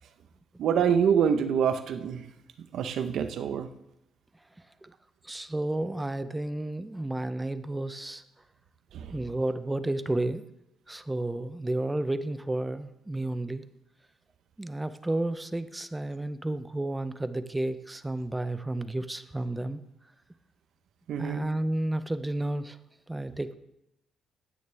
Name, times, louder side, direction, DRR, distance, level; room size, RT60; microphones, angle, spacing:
voice 1, 0.6-2.3 2.7-3.7 8.9-9.2 21.1-21.5, right 7 dB, 75° right, 9 dB, 1.0 m, -26 dB
voice 2, 5.2-8.2 9.1-10.4 10.9-13.7 14.6-19.8 21.2-22.8 23.1-23.5, right 1 dB, 10° right, 12 dB, 0.7 m, -31 dB
15.0 x 9.7 x 3.5 m, 0.84 s
cardioid pair, 90°, 0 cm